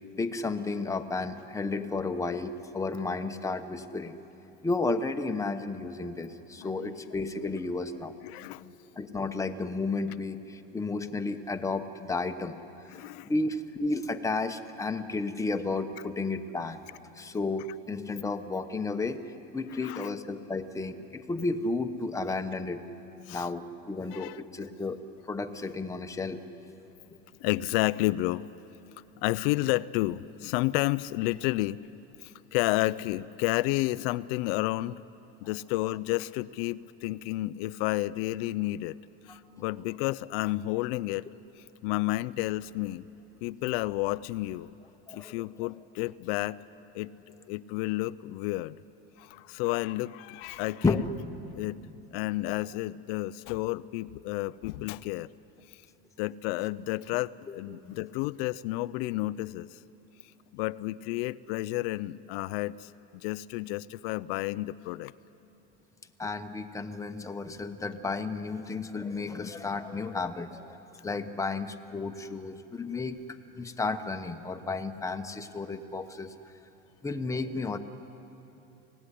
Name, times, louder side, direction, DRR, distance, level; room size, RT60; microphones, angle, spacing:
voice 1, 0.2-4.2 4.6-8.1 9.0-12.5 13.2-16.8 17.1-19.2 19.5-22.8 23.3-26.4 39.3-39.4 45.1-45.4 45.6-45.7 50.8-51.1 57.5-57.6 57.8-58.0 66.2-73.2 73.5-76.3 77.0-77.8, left 3 dB, 10° left, 7 dB, 1.0 m, -32 dB
voice 2, 6.6-7.0 8.2-8.7 12.9-13.3 19.7-20.1 23.3-23.5 24.1-24.4 27.4-28.5 29.2-31.9 32.2-35.0 35.4-39.0 39.3-41.3 41.8-43.1 43.4-44.7 45.1-46.6 46.9-47.1 47.4-48.8 49.2-51.0 51.5-51.8 52.1-55.3 56.2-59.8 60.5-65.1, left 18 dB, 80° left, 16 dB, 0.6 m, -31 dB
24.5 x 18.0 x 10.0 m, 3.0 s
cardioid pair, 140°, 29 cm